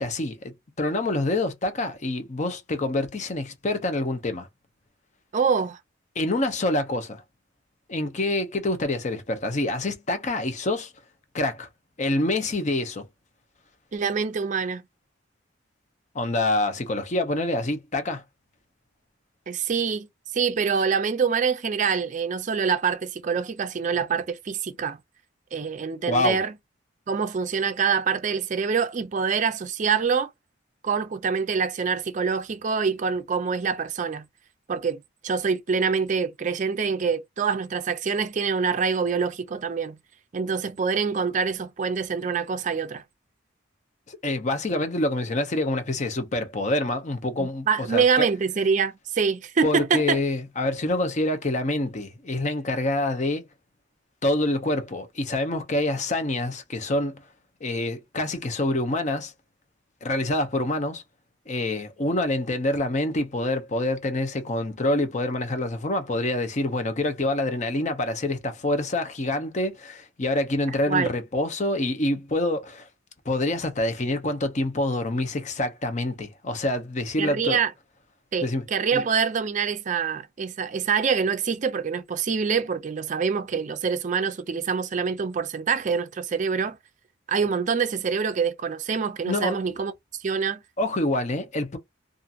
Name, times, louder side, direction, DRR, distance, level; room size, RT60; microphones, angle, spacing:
voice 1, 0.0-4.5 6.2-7.2 7.9-10.9 11.3-11.7 12.0-13.0 16.1-18.2 26.1-26.4 44.1-48.3 49.6-53.4 54.2-57.2 57.6-59.3 60.0-61.0 61.5-72.9 73.3-77.6 78.4-78.6 78.9-79.0 89.3-89.6 90.8-91.8, left 1 dB, 40° left, 0.6 m, -26 dB
voice 2, 5.3-5.8 13.9-14.8 19.5-20.1 20.3-25.0 25.5-26.5 27.1-30.3 30.8-34.3 34.7-40.0 40.3-43.0 47.4-50.2 70.9-71.1 77.2-77.7 78.3-86.8 87.3-89.9 90.2-90.6, right 6 dB, 40° right, 0.4 m, -25 dB
2.8 x 2.5 x 2.4 m
head